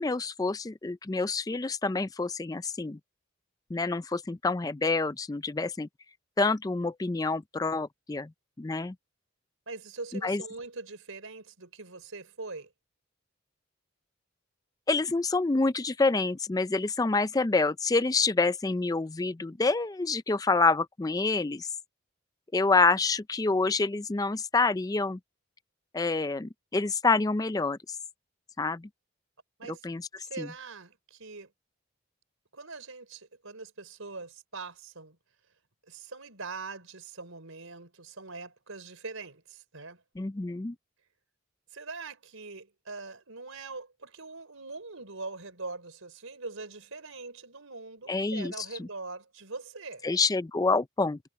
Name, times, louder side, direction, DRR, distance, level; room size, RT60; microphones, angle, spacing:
voice 1, 0.0-3.0 3.7-5.9 6.4-8.3 8.6-8.9 10.2-10.4 14.9-21.7 22.5-25.2 25.9-28.0 28.6-28.9 29.8-30.0 30.4-30.5 40.2-40.7 48.1-48.9 50.0-51.2, left 3 dB, 20° left, 0.4 m, -27 dB
voice 2, 9.7-12.7 29.6-29.9 30.2-31.5 32.5-35.2 35.9-40.0 41.7-50.1, right 3 dB, 85° right, 4.4 m, -42 dB
head